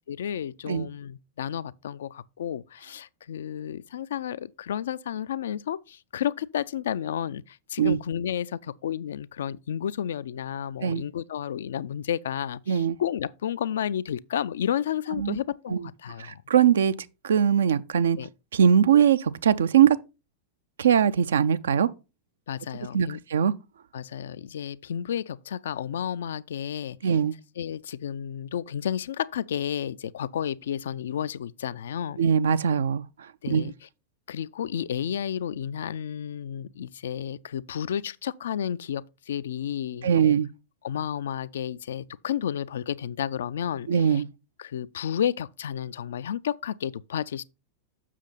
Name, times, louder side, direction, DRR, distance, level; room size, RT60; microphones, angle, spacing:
voice 1, 0.1-16.4 18.2-18.3 22.5-23.2 23.9-27.2 27.6-32.2 33.4-33.7 34.3-40.4 40.8-44.2 44.6-47.4, left 9 dB, 60° left, 0.4 m, -32 dB
voice 2, 12.7-13.0 15.2-15.4 15.7-15.8 16.2-16.9 17.2-18.2 18.5-20.0 20.8-21.9 22.9-23.5 27.0-27.3 32.2-33.0 33.5-33.7 40.0-40.5 43.9-44.3, right 8 dB, 65° right, 0.5 m, -21 dB
7.5 x 6.4 x 3.9 m
figure-of-eight pair, 90°, 0 cm